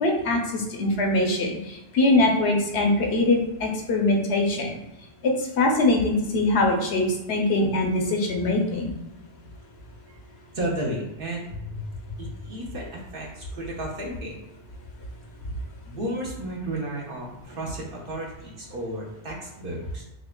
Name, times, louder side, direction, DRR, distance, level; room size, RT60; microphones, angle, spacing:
voice 1, 0.0-4.8 5.2-8.9, left 2 dB, 70° left, 1 dB, 0.9 m, -23 dB
voice 2, 10.5-11.9 12.2-14.3 15.8-20.0, right 1 dB, 55° right, -2 dB, 1.0 m, -33 dB
6.2 x 2.4 x 2.2 m, 0.90 s
omnidirectional pair, 1.2 m